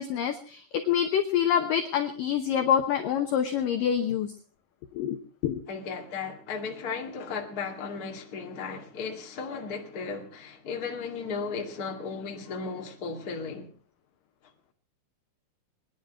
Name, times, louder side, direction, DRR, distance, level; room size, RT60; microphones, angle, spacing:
voice 1, 0.0-4.3 4.9-5.2 5.4-5.6, left 9 dB, 75° left, 2.1 m, -26 dB
voice 2, 5.7-13.7, left 5 dB, 35° left, 1.7 m, -35 dB
23.0 x 10.5 x 4.5 m
omnidirectional pair, 5.1 m